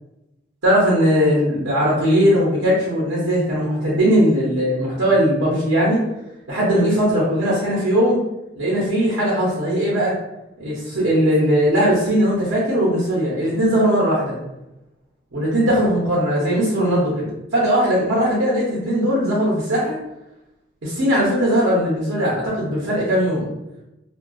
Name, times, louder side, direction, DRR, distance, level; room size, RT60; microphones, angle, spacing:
voice 1, 0.6-6.0 6.5-8.2 8.5-10.2 10.6-14.4 15.3-19.9 20.8-23.5, equal, 80° right, -6 dB, 0.8 m, -19 dB
2.5 x 2.3 x 2.3 m, 0.93 s
head